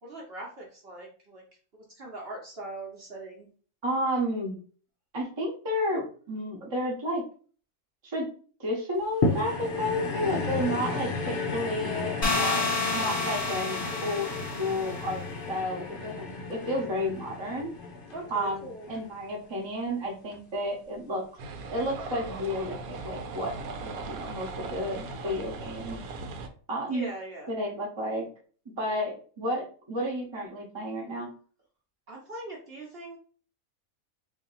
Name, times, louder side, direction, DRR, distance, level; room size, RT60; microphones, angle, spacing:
voice 1, 0.0-1.4 2.0-3.5 18.1-18.9 26.9-27.5 32.1-33.2, right 2 dB, 50° right, -2 dB, 1.0 m, -41 dB
voice 2, 3.8-4.6 5.1-7.2 8.0-8.3 8.6-14.3 14.6-17.7 18.3-21.2 21.7-26.0 26.7-27.1 27.5-28.3 28.8-31.3, equal, 25° right, -2 dB, 0.8 m, -31 dB
sound 1, 9.2-19.7 20.3-20.4, left 3 dB, 60° left, 0.6 m, -33 dB
sound 2, 12.2-15.1, left 3 dB, 30° left, 0.9 m, -29 dB
sound 3, 21.4-26.5, right 3 dB, 80° right, 1.1 m, -38 dB
2.8 x 2.7 x 4.0 m, 0.41 s
omnidirectional pair, 1.5 m